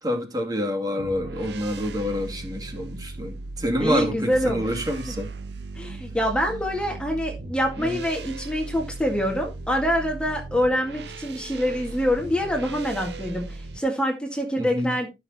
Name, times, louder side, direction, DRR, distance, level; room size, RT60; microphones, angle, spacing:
voice 1, 0.0-5.3 7.8-8.0 14.6-15.0, equal, 20° right, 2.5 m, -27 dB
sound 1, 1.0-13.8, right 3 dB, 80° right, 1.2 m, -37 dB
voice 2, 3.8-4.7 5.8-15.1, equal, 5° left, 1.9 m, -25 dB
12.5 x 6.6 x 4.1 m
head